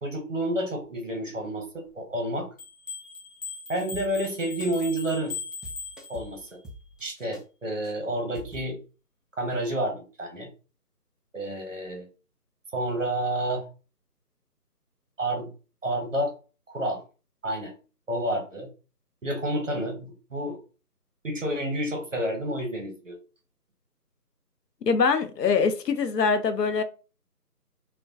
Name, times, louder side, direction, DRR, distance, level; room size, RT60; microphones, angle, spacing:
voice 1, 0.0-2.5 3.7-5.4 6.1-6.6 7.0-8.8 9.3-10.5 11.3-12.1 12.7-13.6 15.2-15.5 15.8-16.3 16.7-17.0 17.4-17.7 18.1-18.7 19.2-20.6 21.2-23.2, right 1 dB, 55° right, 0.8 m, -29 dB
sound 1, 2.6-6.6, left 4 dB, 55° left, 1.0 m, -39 dB
sound 2, 3.7-4.3 4.6-4.9 5.1-5.4 5.6-7.4 7.8-7.9 8.3-8.7, equal, ahead, 0.3 m, -46 dB
voice 2, 24.8-26.8, left 5 dB, 85° left, 0.6 m, -23 dB
2.2 x 2.1 x 2.6 m
figure-of-eight pair, 175°, 47 cm